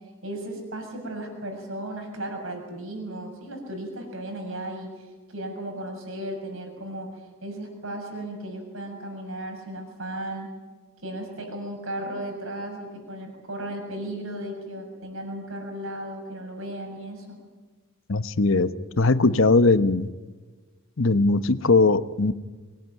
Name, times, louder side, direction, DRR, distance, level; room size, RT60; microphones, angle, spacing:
voice 1, 0.2-10.5 11.0-17.4, right 1 dB, 70° right, 3 dB, 7.0 m, -35 dB
voice 2, 18.1-18.7 19.0-20.1 21.0-22.3, left 3 dB, 65° left, 13 dB, 1.0 m, -20 dB
23.5 x 20.0 x 9.5 m, 1.3 s
head